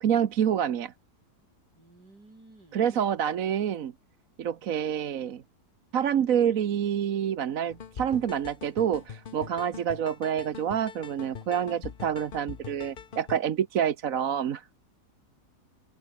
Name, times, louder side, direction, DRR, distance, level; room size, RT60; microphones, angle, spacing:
voice 1, 0.0-0.9 2.7-3.9 4.4-5.4 5.9-14.7, right 9 dB, 60° right, 1.3 m, -27 dB
voice 2, 1.7-3.1, right 2 dB, 80° right, 7.3 m, -52 dB
sound 1, 7.7-13.4, left 7 dB, 40° left, 0.8 m, -43 dB
open air
omnidirectional pair, 1.8 m